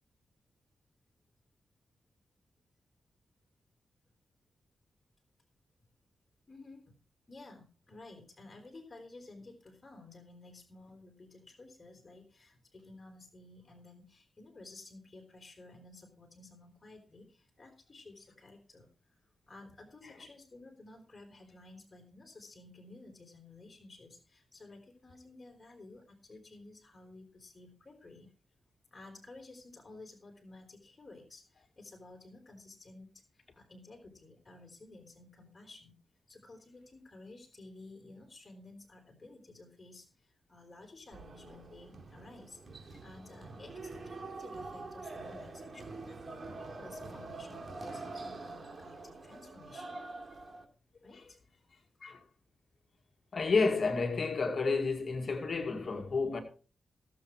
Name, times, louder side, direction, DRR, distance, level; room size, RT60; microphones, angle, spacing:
voice 1, 6.5-6.9 7.3-19.2 19.5-28.3 28.9-35.9 36.3-46.5 46.8-50.0 51.0-51.4, left 2 dB, 35° left, 4.2 m, -54 dB
sound 1, 41.1-50.6, right 3 dB, 40° right, 2.7 m, -45 dB
voice 2, 53.3-56.4, left 4 dB, 55° left, 2.1 m, -30 dB
16.5 x 7.7 x 4.7 m
cardioid pair, 50°, 0 cm